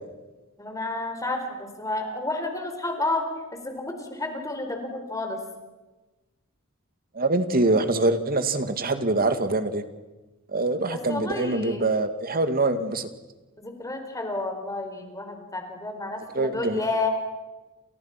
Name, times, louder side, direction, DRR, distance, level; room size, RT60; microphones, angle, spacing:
voice 1, 0.6-3.2 3.5-5.4 10.9-11.8 13.6-17.2, left 2 dB, 15° left, 5 dB, 4.4 m, -30 dB
voice 2, 7.1-9.8 10.5-13.1 16.3-16.8, right 2 dB, 45° right, 9 dB, 2.3 m, -24 dB
29.5 x 28.5 x 6.0 m, 1.1 s
head